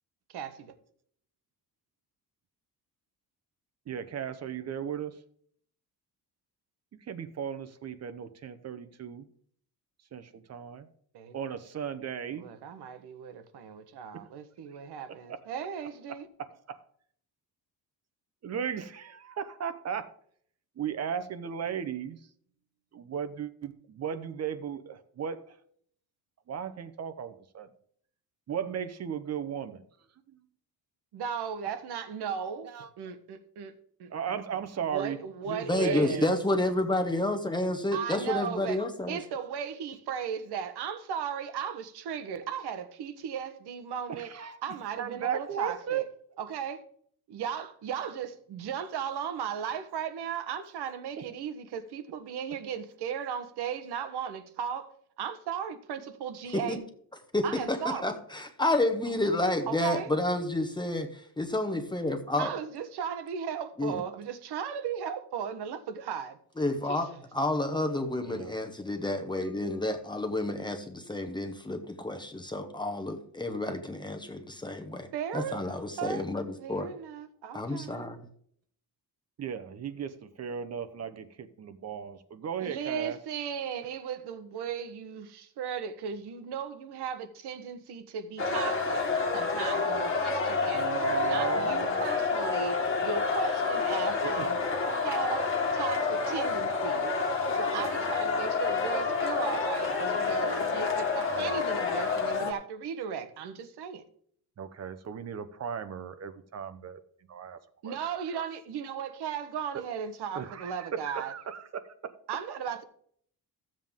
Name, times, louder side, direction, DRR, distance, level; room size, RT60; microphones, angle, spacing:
voice 1, 0.3-0.8 11.1-11.4 12.3-16.3 31.1-34.3 34.8-36.3 37.9-44.3 44.6-46.1 46.4-46.8 47.3-54.9 55.2-56.8 57.4-58.2 59.7-60.1 62.4-66.4 66.9-67.2 75.1-76.3 76.6-78.0 82.6-94.6 95.0-97.2 97.5-104.0 107.8-111.3 112.3-112.8, right 7 dB, 75° right, 1.2 m, -36 dB
voice 2, 3.9-5.2 7.1-9.3 10.1-10.9 11.3-12.4 15.3-15.4 16.4-16.8 18.4-20.1 20.8-22.2 22.9-25.5 26.5-27.7 28.5-29.8 32.6-32.9 34.1-35.2 35.5-36.4 44.1-44.6 45.0-46.1 51.2-51.3 68.2-68.5 79.4-83.2 90.7-92.0 94.2-94.8 97.7-97.8 101.2-101.6 104.6-107.0 107.3-107.6 107.8-108.0 108.3-108.5 110.3-112.1, right 7 dB, 40° right, 0.8 m, -36 dB
voice 3, 35.7-39.2 56.5-56.8 57.3-62.5 63.8-64.0 66.6-67.1 67.3-75.1 75.3-76.9 77.5-78.3, left 1 dB, 10° left, 0.9 m, -30 dB
sound 1, 88.4-102.5, left 4 dB, 30° left, 1.6 m, -29 dB
14.5 x 7.5 x 3.6 m
cardioid pair, 165°, 40 cm